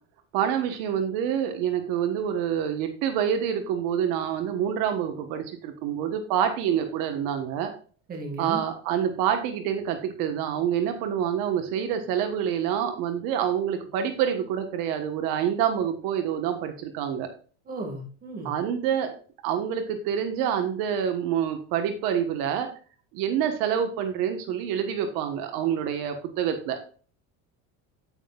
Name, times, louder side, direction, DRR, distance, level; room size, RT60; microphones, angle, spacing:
voice 1, 0.3-7.7 8.4-17.3 18.4-19.1 19.4-22.7 23.1-26.8, right 9 dB, 75° right, 7 dB, 1.4 m, -27 dB
voice 2, 8.1-8.6 17.7-18.5, right 2 dB, 25° right, 2 dB, 2.0 m, -35 dB
8.8 x 8.7 x 2.4 m, 0.41 s
cardioid pair, 160°, 34 cm